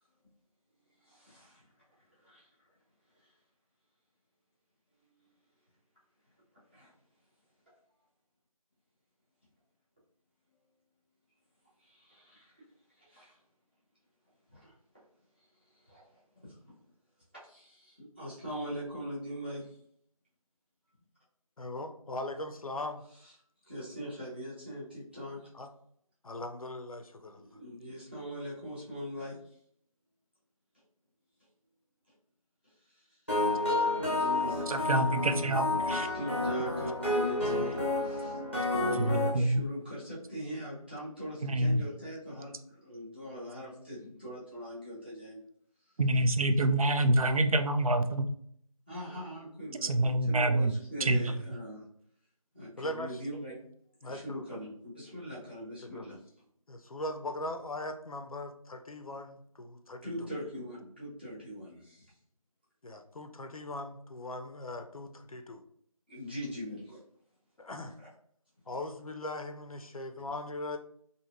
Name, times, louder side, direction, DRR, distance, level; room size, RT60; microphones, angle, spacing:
voice 1, 1.0-1.7 2.2-2.5 3.2-3.3 6.5-6.9 11.8-12.6 12.9-13.4 14.5-14.7 15.4-15.5 15.7-16.7 17.4-19.7 23.1-23.3 23.7-25.5 27.3-29.6 32.6-33.6 34.0-35.0 36.0-38.4 38.7-45.4 48.9-51.8 52.5-53.5 54.0-56.4 60.0-62.2 66.1-67.0 68.0-68.1, equal, 15° right, -10 dB, 0.8 m, -42 dB
voice 2, 21.6-23.0 25.5-25.7 26.2-27.5 52.8-53.1 54.0-54.6 55.8-56.2 56.7-60.1 62.8-65.6 67.6-68.0 68.7-70.8, left 1 dB, 70° left, 6 dB, 0.5 m, -39 dB
sound 1, 33.3-39.3, left 2 dB, 20° left, 0.7 m, -30 dB
voice 3, 34.7-36.1 39.0-39.6 41.4-41.8 46.0-48.2 49.8-50.7 51.0-51.2, right 1 dB, 70° right, 8 dB, 0.4 m, -26 dB
2.8 x 2.6 x 2.4 m, 0.65 s
figure-of-eight pair, 175°, 19 cm